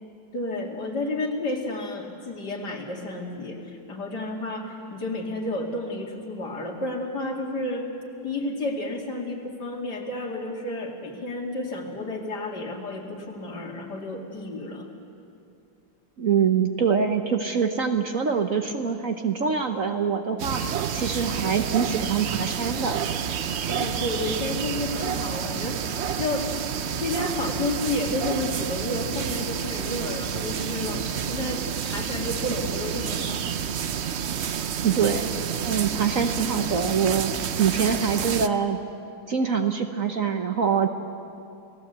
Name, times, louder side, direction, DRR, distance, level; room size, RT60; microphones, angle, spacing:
voice 1, 0.3-7.8 8.2-14.9 23.7-26.5 27.0-33.4, left 2 dB, 60° left, 1 dB, 3.0 m, -31 dB
voice 2, 16.2-20.6 20.9-23.0 34.8-35.3 35.6-37.3 37.6-38.8 39.3-40.9, right 6 dB, 50° right, 5 dB, 1.3 m, -24 dB
sound 1, 20.4-38.5, right 8 dB, 65° right, 0.6 m, -29 dB
29.5 x 17.5 x 8.1 m, 2.6 s
omnidirectional pair, 2.1 m